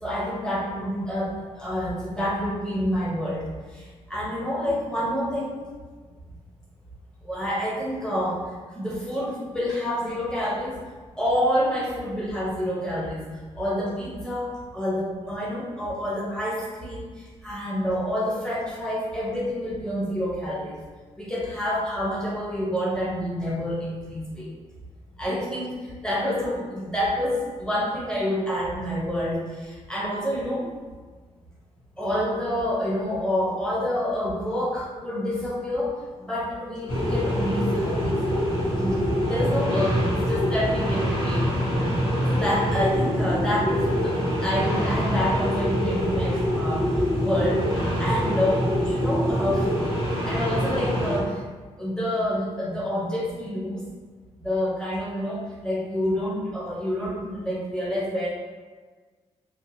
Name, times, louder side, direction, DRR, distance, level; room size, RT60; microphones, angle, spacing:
voice 1, 0.0-5.7 7.2-10.8 11.2-20.8 21.2-24.5 25.1-30.7 32.0-38.2 38.7-39.0 39.3-41.5 41.9-42.0 42.3-49.8 50.3-51.4 51.8-53.9 54.4-58.3, equal, 5° left, -6 dB, 0.8 m, -28 dB
sound 1, 36.9-51.2, equal, 50° left, 1.3 m, -25 dB
2.7 x 2.3 x 2.7 m, 1.4 s
cardioid pair, 95°, 12 cm